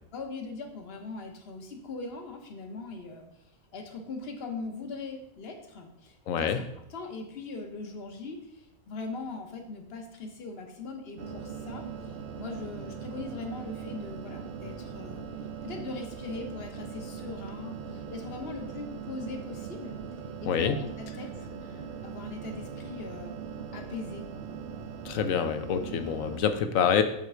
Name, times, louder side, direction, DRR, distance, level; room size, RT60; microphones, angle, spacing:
voice 1, 0.1-3.3 3.7-15.3 15.6-20.0 20.4-21.3 22.0-23.3 23.7-24.4, left 3 dB, 50° left, 4 dB, 1.2 m, -40 dB
voice 2, 6.3-6.6 20.5-20.8 25.0-27.0, left 7 dB, 90° left, 8 dB, 1.1 m, -26 dB
sound 1, 11.2-26.4, right 6 dB, 55° right, 0.8 m, -40 dB
5.7 x 4.4 x 6.2 m, 0.79 s
omnidirectional pair, 1.4 m